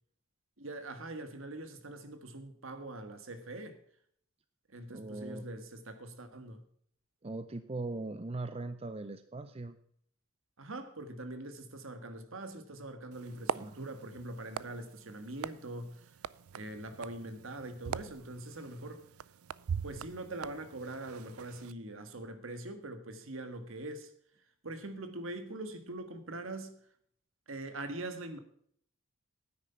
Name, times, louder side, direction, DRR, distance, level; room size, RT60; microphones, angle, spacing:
voice 1, 0.6-3.8 4.7-6.6 10.6-16.2 16.5-19.0 19.8-24.1 24.6-26.8 27.5-28.4, right 2 dB, 65° right, 1.6 m, -43 dB
voice 2, 4.9-5.5 7.2-9.8 13.5-14.0, right 2 dB, 25° right, 0.5 m, -40 dB
sound 1, 13.1-21.7, right 7 dB, 90° right, 0.5 m, -43 dB
9.7 x 9.5 x 5.7 m
head